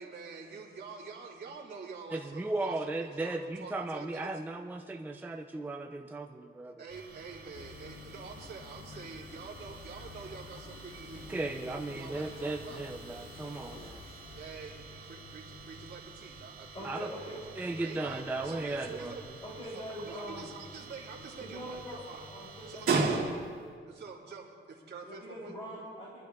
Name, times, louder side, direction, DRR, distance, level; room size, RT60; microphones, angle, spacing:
voice 1, 0.0-4.3 6.8-12.8 14.3-17.4 17.7-19.2 19.7-22.3 22.7-23.2 23.9-25.5, right 4 dB, 55° right, -3 dB, 2.5 m, -47 dB
voice 2, 2.1-6.7 11.3-14.0 16.8-17.1 17.6-19.2, right 2 dB, 10° right, 3 dB, 0.4 m, -36 dB
sound 1, 6.9-23.7, right 4 dB, 85° right, 2.2 m, -40 dB
sound 2, 7.5-15.9, left 4 dB, 70° left, 1.1 m, -51 dB
voice 3, 16.7-17.4 18.0-18.1 19.4-20.5 21.4-23.0 25.0-26.3, equal, 25° left, -6 dB, 2.9 m, -43 dB
27.0 x 11.5 x 2.3 m, 2.1 s
wide cardioid pair, 150°, 21 cm